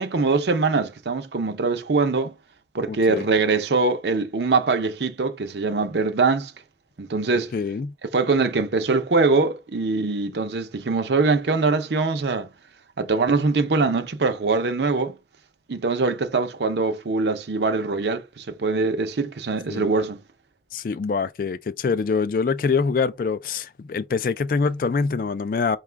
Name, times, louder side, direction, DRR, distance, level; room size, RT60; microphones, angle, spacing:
voice 1, 0.0-2.3 2.7-6.5 7.0-7.5 8.1-12.5 13.0-15.2 15.7-20.2, right 3 dB, 75° right, 0.6 m, -23 dB
voice 2, 2.9-3.3 7.5-7.9 19.7-19.9 20.7-25.8, left 5 dB, 50° left, 0.3 m, -24 dB
4.7 x 2.3 x 3.3 m
head